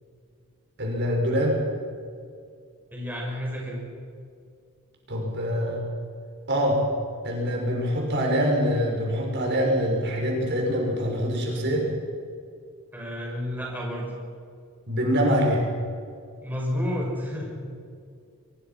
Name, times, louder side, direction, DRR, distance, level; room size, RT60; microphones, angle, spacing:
voice 1, 0.8-1.6 5.1-5.8 6.5-6.8 7.2-11.9 14.9-15.6, equal, 55° right, -1 dB, 6.0 m, -24 dB
voice 2, 2.9-3.8 12.9-14.1 16.4-17.5, equal, 10° right, -3 dB, 6.1 m, -30 dB
25.0 x 22.5 x 5.9 m, 2.3 s
head